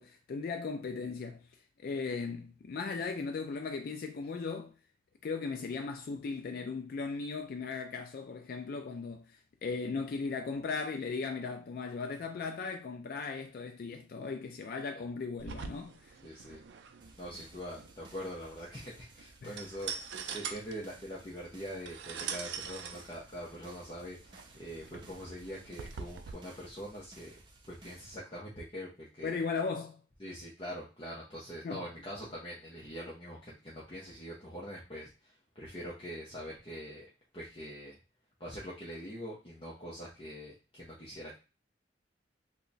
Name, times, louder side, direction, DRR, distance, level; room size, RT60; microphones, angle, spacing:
voice 1, 0.0-1.4 1.8-4.7 5.2-16.2 16.5-16.6 19.4-19.6 29.2-30.0 31.6-31.8, left 4 dB, 50° left, 0.3 m, -37 dB
sound 1, 15.4-26.3, right 6 dB, 70° right, 0.4 m, -44 dB
voice 2, 16.2-16.6 17.2-24.2 24.5-27.3 27.7-29.4 30.2-35.1 35.6-37.1 37.3-37.9 38.4-41.4, equal, 30° left, 0.7 m, -43 dB
sound 2, 17.0-28.2, right 2 dB, 25° right, 0.6 m, -57 dB
2.9 x 2.1 x 3.9 m
head